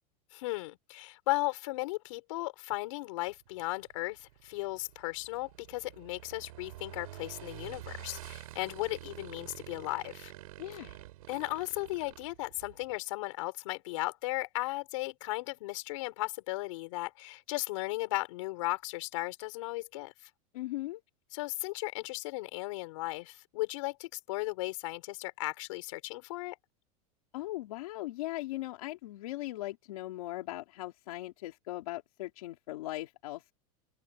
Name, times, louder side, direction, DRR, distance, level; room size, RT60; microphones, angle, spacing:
voice 1, 0.3-10.3 10.7-10.8 11.3-20.1 21.3-26.6, left 21 dB, 60° left, 5.6 m, -36 dB
Motorcycle / Engine, 3.3-13.0, right 16 dB, 85° right, 7.9 m, -48 dB
voice 2, 10.6-10.9 20.5-21.0 27.3-33.5, left 17 dB, 80° left, 3.1 m, -39 dB
supercardioid pair, 180°, 18 cm